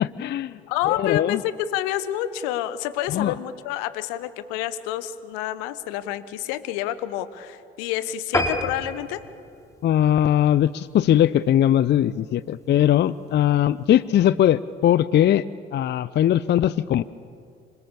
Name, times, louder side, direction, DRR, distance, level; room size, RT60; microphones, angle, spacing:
voice 1, 0.0-0.6 0.9-1.4 3.1-3.3 9.8-15.4 15.7-17.0, left 11 dB, 35° left, 18 dB, 0.5 m, -20 dB
voice 2, 0.7-9.2, left 12 dB, 65° left, 15 dB, 1.1 m, -28 dB
sound 1, 8.3-11.1 11.6-11.8 12.2-12.3 12.6-12.7 12.9-13.0, left 1 dB, 10° left, 3.1 m, -29 dB
26.0 x 24.5 x 6.9 m, 2.4 s
figure-of-eight pair, 50°, 30 cm